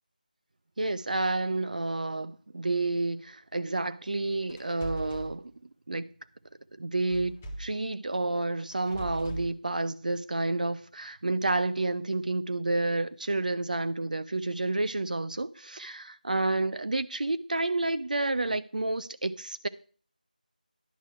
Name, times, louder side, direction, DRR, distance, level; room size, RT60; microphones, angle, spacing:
voice 1, 0.8-5.5 5.9-6.1 6.8-19.7, right 2 dB, 60° right, 0.6 m, -30 dB
sound 1, 4.5-5.3 7.1-7.8 8.7-9.5, right 1 dB, 10° left, 0.5 m, -39 dB
10.0 x 4.5 x 5.6 m
figure-of-eight pair, 170°, 5 cm